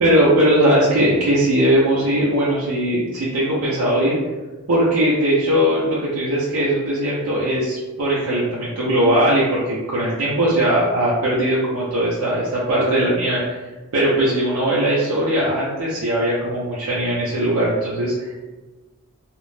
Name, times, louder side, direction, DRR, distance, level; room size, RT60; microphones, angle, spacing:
voice 1, 0.0-4.2 4.7-13.6 13.9-18.4, right 1 dB, 80° right, -7 dB, 0.5 m, -19 dB
2.4 x 2.0 x 3.1 m, 1.2 s
head